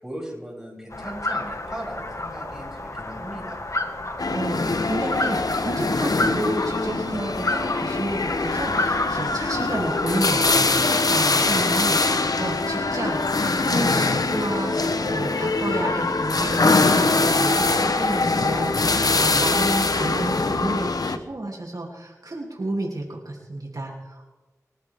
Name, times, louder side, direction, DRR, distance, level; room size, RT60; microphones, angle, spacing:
voice 1, 0.0-3.6 9.4-9.7 11.3-11.7 15.6-16.0 19.2-19.6, equal, 5° right, -4 dB, 7.6 m, -37 dB
sound 1, 0.9-10.6, left 2 dB, 55° left, 1.8 m, -31 dB
sound 2, 4.2-21.2, left 3 dB, 80° left, 1.0 m, -23 dB
voice 2, 4.3-24.3, right 2 dB, 70° right, -2 dB, 3.0 m, -31 dB
27.5 x 14.0 x 3.7 m, 1.1 s
wide cardioid pair, 55°, 6 cm